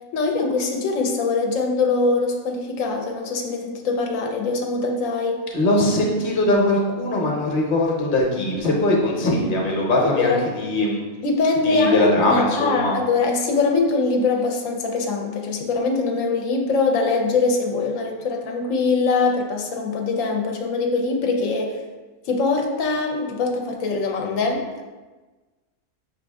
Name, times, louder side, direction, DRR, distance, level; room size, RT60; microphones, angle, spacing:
voice 1, 0.1-5.4 10.2-10.4 11.2-21.8 22.3-24.8, left 3 dB, 90° left, 1 dB, 1.0 m, -22 dB
voice 2, 5.5-11.0 11.6-12.9, left 1 dB, 45° left, -2 dB, 0.9 m, -21 dB
5.6 x 2.6 x 3.4 m, 1.3 s
omnidirectional pair, 1.4 m